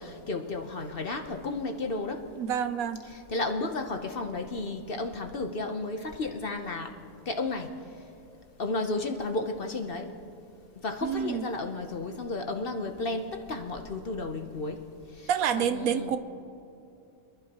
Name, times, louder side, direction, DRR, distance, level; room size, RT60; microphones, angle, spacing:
voice 1, 0.0-2.3 3.0-6.9 7.3-7.7 8.6-10.1 10.8-14.8 15.1-15.3 15.6-16.2, left 3 dB, 50° left, 5 dB, 0.8 m, -33 dB
voice 2, 2.4-3.1 11.0-11.5 15.3-16.2, right 8 dB, 75° right, 12 dB, 1.1 m, -28 dB
26.5 x 11.5 x 2.9 m, 2.7 s
omnidirectional pair, 1.5 m